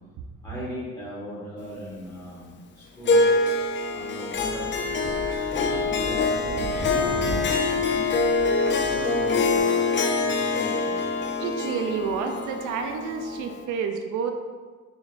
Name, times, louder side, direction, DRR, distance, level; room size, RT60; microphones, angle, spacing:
voice 1, 0.4-3.3 3.9-4.7 5.5-8.1 8.8-9.9 10.2-11.0, left 1 dB, 10° left, -11 dB, 1.1 m, -38 dB
Harp, 3.1-13.6, left 3 dB, 40° left, 0.4 m, -25 dB
Wind, 4.3-9.6, equal, 20° right, 0.8 m, -37 dB
voice 2, 11.4-14.3, right 6 dB, 80° right, 5 dB, 0.4 m, -29 dB
3.9 x 3.6 x 2.4 m, 1.4 s
cardioid pair, 90°, 30 cm